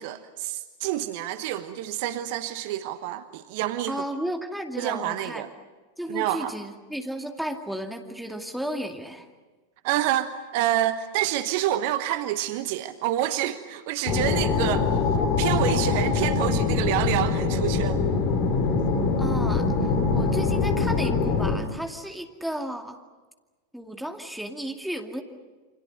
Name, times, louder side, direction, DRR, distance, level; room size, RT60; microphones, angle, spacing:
voice 1, 0.0-4.0 4.8-5.5 6.1-6.5 9.8-14.9 15.4-18.0, right 13 dB, 50° right, 12 dB, 1.1 m, -28 dB
voice 2, 3.9-5.4 6.0-9.3 19.2-23.0 23.7-25.2, equal, ahead, 3 dB, 2.4 m, -33 dB
sound 1, 14.1-21.6, left 4 dB, 40° left, 3.0 m, -23 dB
29.0 x 25.5 x 6.6 m, 1.3 s
figure-of-eight pair, 90°, 0 cm